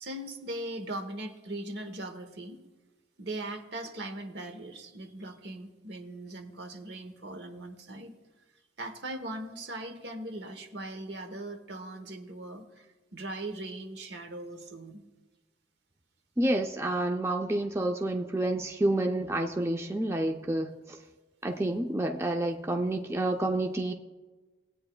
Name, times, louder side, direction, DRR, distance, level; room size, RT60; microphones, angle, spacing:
voice 1, 0.0-2.6 3.2-8.1 8.8-12.9 13.1-15.1, right 1 dB, 65° right, 7 dB, 1.0 m, -39 dB
voice 2, 16.4-21.0 21.4-23.9, right 1 dB, 15° right, 3 dB, 0.4 m, -29 dB
18.5 x 8.6 x 2.2 m, 1.2 s
head